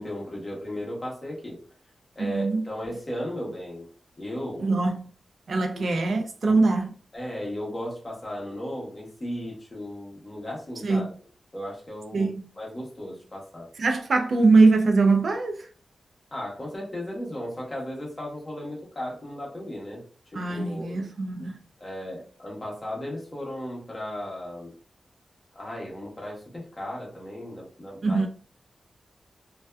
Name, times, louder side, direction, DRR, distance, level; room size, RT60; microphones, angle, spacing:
voice 1, 0.0-1.6 2.2-3.9 4.2-4.7 5.7-5.9 6.4-6.6 7.1-11.1 11.5-12.3 12.6-13.7 16.3-20.0 20.3-21.0 21.8-24.7 25.5-28.3, left 1 dB, 25° left, 0.9 m, -35 dB
voice 2, 2.2-2.6 4.6-5.0 5.5-6.9 10.8-11.1 12.1-12.4 13.8-15.7 20.3-21.6 28.0-28.3, right 3 dB, 60° right, 0.4 m, -22 dB
2.5 x 2.3 x 2.2 m
wide cardioid pair, 130°, 0 cm